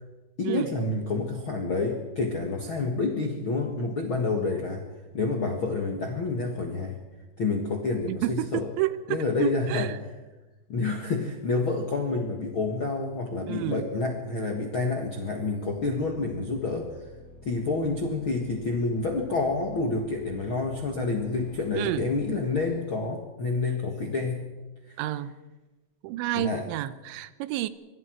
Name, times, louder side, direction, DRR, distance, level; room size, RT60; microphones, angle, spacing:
voice 1, 0.4-4.8 5.1-7.0 7.4-8.7 9.1-9.9 10.7-16.9 17.4-24.5 24.9-25.0 26.3-26.6, left 3 dB, 60° left, 1 dB, 1.3 m, -28 dB
voice 2, 8.1-10.0 13.4-13.9 21.7-22.1 25.0-25.3 26.0-27.7, right 15 dB, 90° right, 14 dB, 3.2 m, -30 dB
sound 1, 15.7-22.7, left 1 dB, 80° left, 6.8 m, -49 dB
24.5 x 24.0 x 4.6 m, 1.1 s
omnidirectional pair, 5.1 m